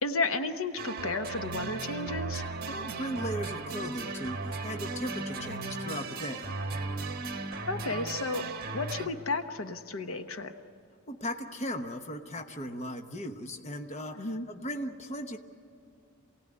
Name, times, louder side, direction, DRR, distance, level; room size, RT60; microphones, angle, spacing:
voice 1, 0.0-2.5 7.7-8.5 8.7-10.5 14.1-14.5, left 3 dB, 70° left, 7 dB, 1.1 m, -32 dB
sound 1, 0.8-9.1, right 3 dB, 45° right, 1.4 m, -36 dB
voice 2, 2.7-6.5 11.1-15.4, equal, 30° left, 5 dB, 1.1 m, -37 dB
27.5 x 17.5 x 9.7 m, 2.4 s
head